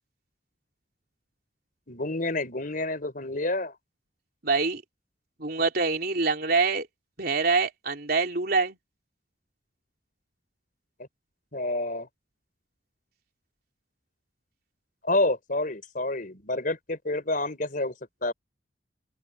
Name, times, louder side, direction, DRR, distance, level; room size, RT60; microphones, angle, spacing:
voice 1, 1.9-3.7 11.5-12.1 15.0-17.9 18.2-18.3, left 2 dB, 50° left, 4.6 m, -28 dB
voice 2, 4.4-4.8 5.4-6.9 7.2-8.8, right 4 dB, 55° right, 3.7 m, -25 dB
open air
head